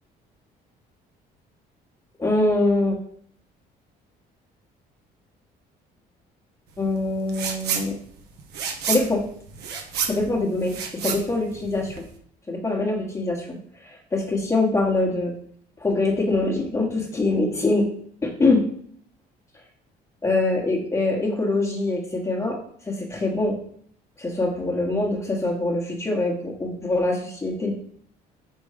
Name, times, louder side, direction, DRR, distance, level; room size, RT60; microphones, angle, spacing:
voice 1, 2.2-2.9 6.8-8.0 8.9-9.2 10.1-12.0 12.5-15.3 15.8-17.9 18.2-18.6 20.2-23.6 24.2-27.7, left 2 dB, 15° left, 1 dB, 1.3 m, -24 dB
sound 1, 7.3-7.9 8.2-12.1, right 7 dB, 80° right, 1.2 m, -29 dB
5.5 x 5.2 x 5.0 m, 0.63 s
cardioid pair, 110°, 17 cm